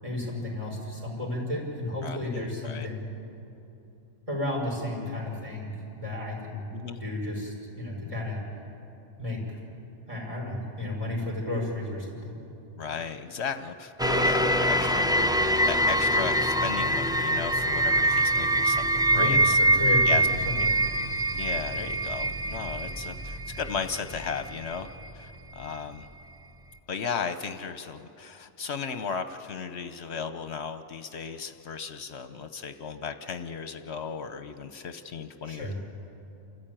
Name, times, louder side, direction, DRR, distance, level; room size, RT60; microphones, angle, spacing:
voice 1, 0.0-3.1 4.3-5.7 6.0-6.7 6.9-8.4 9.2-9.4 10.1-12.4 19.1-20.1 20.5-20.8 35.4-35.7, left 1 dB, 30° right, -3 dB, 5.3 m, -32 dB
voice 2, 2.0-2.9 6.7-7.0 12.8-19.6 20.0-20.3 20.6-20.7 21.0-21.1 21.3-24.9 25.1-26.1 26.9-35.7, left 6 dB, 70° left, 9 dB, 1.0 m, -35 dB
sound 1, 14.0-25.1 25.6-25.7, right 1 dB, 5° right, 0.3 m, -24 dB
28.0 x 14.5 x 9.0 m, 2.9 s
omnidirectional pair, 1.2 m